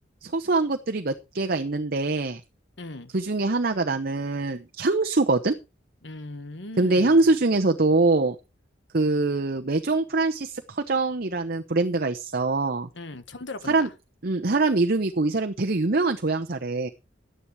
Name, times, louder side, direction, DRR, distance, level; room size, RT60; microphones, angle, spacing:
voice 1, 0.2-2.4 3.1-5.5 6.8-8.3 8.9-12.9 13.7-13.9 14.2-16.9, right 3 dB, 55° right, 0.9 m, -23 dB
voice 2, 2.8-3.1 6.0-7.3 12.9-13.9, left 2 dB, 75° left, 1.6 m, -39 dB
12.5 x 10.0 x 4.8 m
head